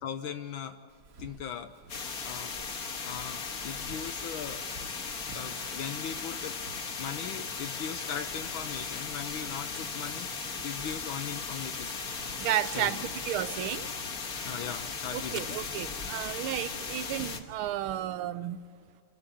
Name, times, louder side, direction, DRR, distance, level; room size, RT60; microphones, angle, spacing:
voice 1, 0.0-0.8 1.2-1.7 2.2-4.6 5.3-6.6 7.0-11.9 12.7-13.0 14.4-15.6, left 8 dB, 75° left, 1.5 m, -39 dB
Walk footsteps, 0.9-18.2, right 3 dB, 45° right, 1.5 m, -53 dB
sound 1, 1.9-17.4, left 5 dB, 50° left, 1.7 m, -37 dB
sound 2, 8.7-12.1 12.4-13.0 13.3-16.0, left 1 dB, 20° left, 0.7 m, -50 dB
voice 2, 12.4-13.9 15.1-18.6, right 12 dB, 85° right, 1.5 m, -33 dB
27.5 x 12.5 x 8.5 m
omnidirectional pair, 2.3 m